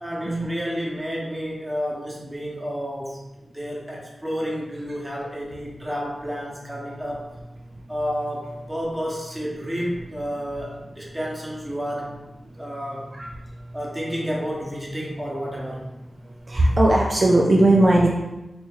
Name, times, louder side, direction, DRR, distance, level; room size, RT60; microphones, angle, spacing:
voice 1, 0.0-3.2 3.5-7.2 7.9-12.1 12.6-13.1 13.7-15.9, equal, 10° right, -4 dB, 1.0 m, -30 dB
voice 2, 12.5-13.8 16.2-18.1, right 1 dB, 45° right, -2 dB, 0.4 m, -20 dB
3.4 x 2.7 x 3.1 m, 0.99 s
wide cardioid pair, 75°, 0 cm